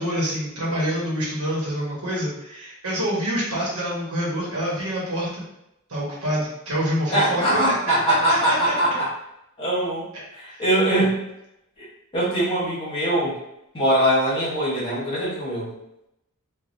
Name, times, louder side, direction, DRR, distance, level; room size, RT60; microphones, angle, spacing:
voice 1, 0.0-5.4 5.9-8.7 10.1-10.2 10.5-10.6, equal, 80° right, -5 dB, 1.0 m, -26 dB
voice 2, 7.1-9.1 9.6-10.1 10.3-11.2 11.8-11.9 12.1-13.3 13.7-15.7, right 1 dB, 25° left, -7 dB, 1.0 m, -22 dB
3.1 x 2.2 x 2.5 m, 0.84 s
head